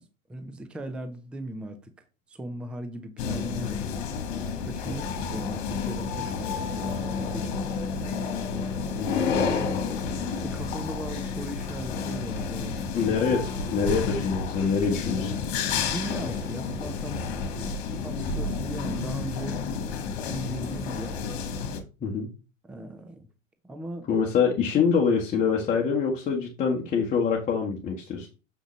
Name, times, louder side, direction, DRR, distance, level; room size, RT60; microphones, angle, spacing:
voice 1, 0.0-1.9 2.3-3.9 4.6-8.3 10.2-13.0 15.8-17.3 17.6-17.8 18.0-19.6 20.0-21.2 22.6-23.3 23.6-24.1, right 1 dB, 5° right, 0.5 m, -38 dB
sound 1, 3.2-21.8, left 5 dB, 40° left, 1.8 m, -30 dB
voice 2, 9.0-9.3 12.9-15.3 22.0-22.3 24.1-28.3, left 6 dB, 20° left, 1.4 m, -25 dB
6.9 x 6.2 x 3.2 m
figure-of-eight pair, 100°, 40 cm